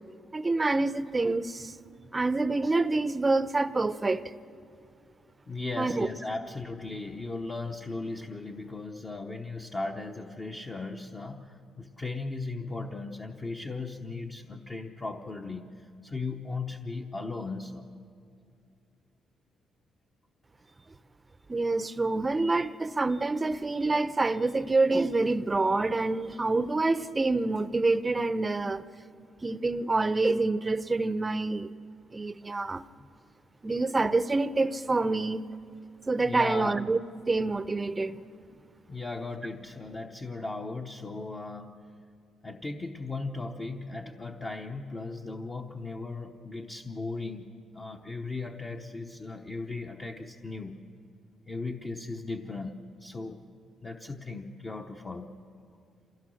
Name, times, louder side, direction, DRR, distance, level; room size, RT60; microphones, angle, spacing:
voice 1, 0.3-1.7 2.1-4.3 5.8-6.1 21.5-28.8 29.4-31.7 32.1-32.8 33.6-35.5 36.1-37.0 37.3-38.2, right 3 dB, 20° right, 0.6 m, -27 dB
voice 2, 5.5-17.8 33.0-33.1 36.2-36.8 38.5-38.6 38.9-41.9 42.4-47.5 47.7-50.8 51.5-53.4 53.8-55.3, left 3 dB, 25° left, 0.9 m, -37 dB
27.0 x 16.5 x 6.4 m
cardioid pair, 90°, 0 cm